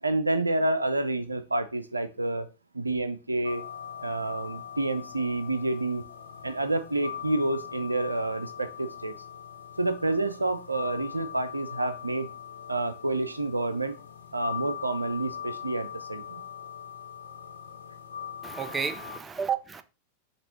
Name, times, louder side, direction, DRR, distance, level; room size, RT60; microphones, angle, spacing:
voice 1, 0.0-2.5 2.7-3.6 4.0-6.0 6.4-9.1 9.8-12.3 12.7-13.9 14.3-16.4, right 2 dB, 80° right, 0.4 m, -29 dB
sound 1, 3.4-19.2, left 8 dB, 65° left, 0.6 m, -41 dB
voice 2, 18.4-19.8, right 6 dB, 15° right, 0.4 m, -31 dB
5.9 x 2.8 x 3.0 m
figure-of-eight pair, 90°, 0 cm